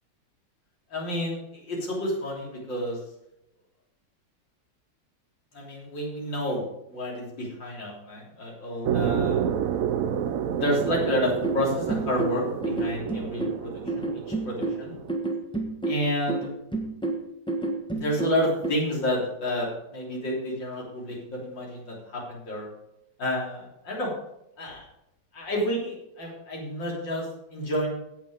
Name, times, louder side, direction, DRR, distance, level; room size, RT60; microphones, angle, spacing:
voice 1, 0.9-1.4 1.6-3.0 5.5-9.4 10.6-14.1 14.5-14.9 15.9-16.5 17.9-22.7 23.2-24.1 24.6-24.8 25.3-27.9, equal, 90° left, -3 dB, 4.2 m, -30 dB
sound 1, 8.8-15.1, right 9 dB, 65° right, 0.9 m, -29 dB
sound 2, 11.0-18.7, right 3 dB, 5° left, 1.0 m, -30 dB
16.5 x 6.1 x 5.1 m, 0.85 s
omnidirectional pair, 1.9 m